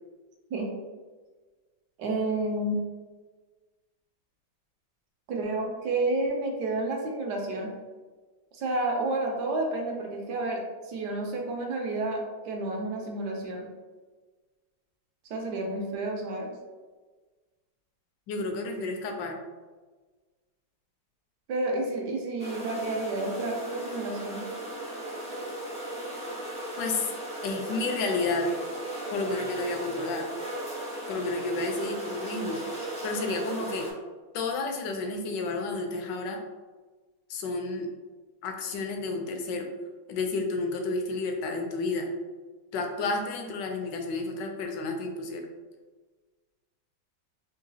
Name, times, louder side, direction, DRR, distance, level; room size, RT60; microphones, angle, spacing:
voice 1, 2.0-2.8 5.3-7.7 8.5-13.7 15.3-16.5 21.5-24.5, right 2 dB, 70° right, 0 dB, 1.1 m, -30 dB
voice 2, 18.3-19.3 26.8-27.1 27.4-28.5 29.1-30.2 31.1-33.9 34.3-36.4 37.3-37.9 38.4-39.7 40.1-42.1 42.7-45.5, left 3 dB, 75° left, 3 dB, 1.2 m, -31 dB
sound 1, 22.4-33.9, right 1 dB, 10° left, 0.4 m, -36 dB
3.8 x 2.7 x 2.7 m, 1.3 s
omnidirectional pair, 2.0 m